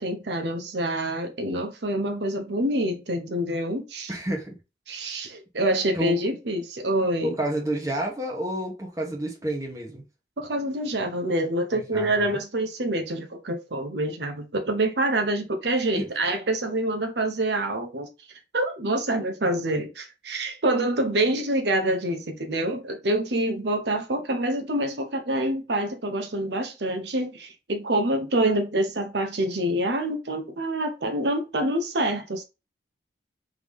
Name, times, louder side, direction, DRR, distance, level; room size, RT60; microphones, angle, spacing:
voice 1, 0.0-4.1 4.9-7.3 10.4-18.1 18.5-32.4, right 1 dB, 75° right, 0.9 m, -26 dB
voice 2, 4.1-4.5 5.9-6.2 7.2-10.0 11.9-12.4, right 1 dB, 20° right, 1.2 m, -29 dB
3.5 x 3.0 x 3.6 m
head